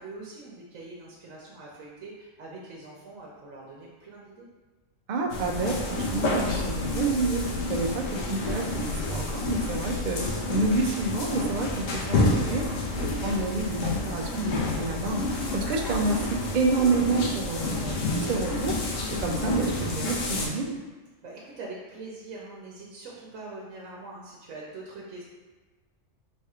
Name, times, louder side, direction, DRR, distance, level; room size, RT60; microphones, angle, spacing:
voice 1, 0.0-4.5 21.2-25.2, right 2 dB, 90° right, -4 dB, 1.1 m, -43 dB
voice 2, 5.1-18.8 19.1-20.8, right 3 dB, 70° right, 2 dB, 0.4 m, -29 dB
sound 1, 5.3-20.5, left 2 dB, 80° left, 1.0 m, -29 dB
3.3 x 2.4 x 4.2 m, 1.3 s
omnidirectional pair, 1.3 m